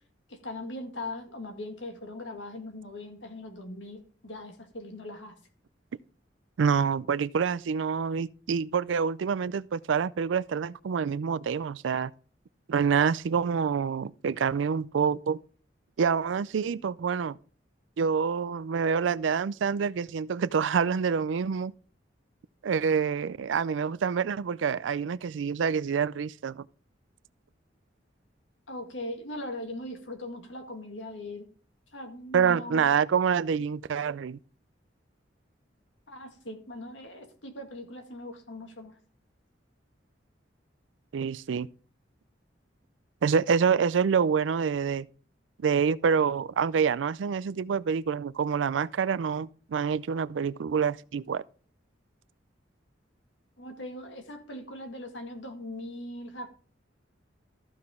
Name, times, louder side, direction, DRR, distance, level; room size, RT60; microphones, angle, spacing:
voice 1, 0.3-5.4 28.7-31.5 31.9-32.9 33.5-33.6 36.1-39.0 53.6-56.5, left 1 dB, 85° left, 1.9 m, -40 dB
voice 2, 6.6-12.1 12.7-15.4 16.0-17.4 18.0-21.7 22.6-26.6 32.3-34.4 41.1-41.7 43.2-45.1 45.6-51.4, right 6 dB, 90° right, 0.4 m, -27 dB
14.0 x 5.8 x 3.6 m
head